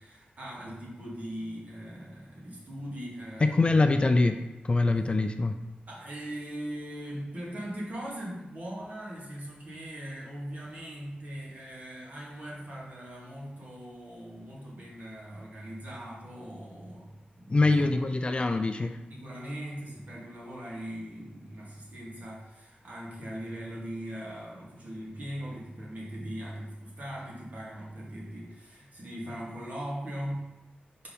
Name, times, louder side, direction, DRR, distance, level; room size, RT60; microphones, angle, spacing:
voice 1, 0.0-3.8 5.9-17.9 19.1-30.5, equal, 50° right, -5 dB, 2.2 m, -40 dB
voice 2, 3.4-4.4 4.6-5.5 17.5-19.0, left 3 dB, 30° left, 7 dB, 0.4 m, -24 dB
4.8 x 4.8 x 5.1 m, 1.0 s
wide cardioid pair, 130°, 3 cm